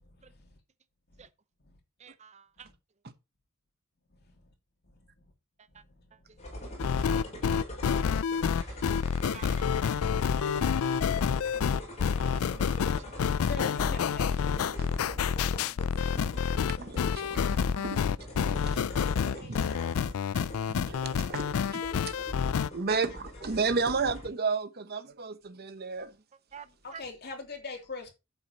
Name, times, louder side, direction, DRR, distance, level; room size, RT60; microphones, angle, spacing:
voice 1, 2.0-2.7 5.6-5.8 6.1-6.4 7.8-7.9 9.3-9.6 11.5-11.6 12.0-12.4 13.0-13.1 26.1-26.2 26.5-27.0, right 7 dB, 35° right, 0.6 m, -50 dB
sound 1, 6.4-24.3, left 1 dB, 35° left, 5.3 m, -43 dB
sound 2, 6.8-22.7, left 7 dB, 85° left, 0.4 m, -28 dB
Acoustic guitar, 10.8-18.8, right 1 dB, 15° right, 1.7 m, -56 dB
voice 2, 13.5-14.5 19.4-19.9 23.4-23.7 27.0-28.1, left 4 dB, 50° left, 3.0 m, -40 dB
voice 3, 15.9-16.2 16.8-17.2 17.8-18.0 19.3-19.6 20.3-21.4 21.7-22.1 22.7-26.1, right 4 dB, 50° right, 1.0 m, -32 dB
12.0 x 8.0 x 3.0 m
head